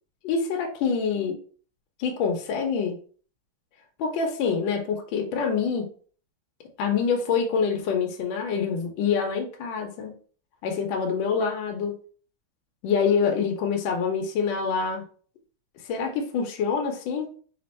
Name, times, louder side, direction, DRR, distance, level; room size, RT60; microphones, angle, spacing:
voice 1, 0.2-1.4 2.0-3.0 4.0-5.9 6.8-10.1 10.6-11.9 12.8-15.0 15.8-17.3, left 6 dB, 70° left, 2 dB, 1.4 m, -26 dB
4.2 x 2.4 x 4.2 m, 0.43 s
omnidirectional pair, 2.3 m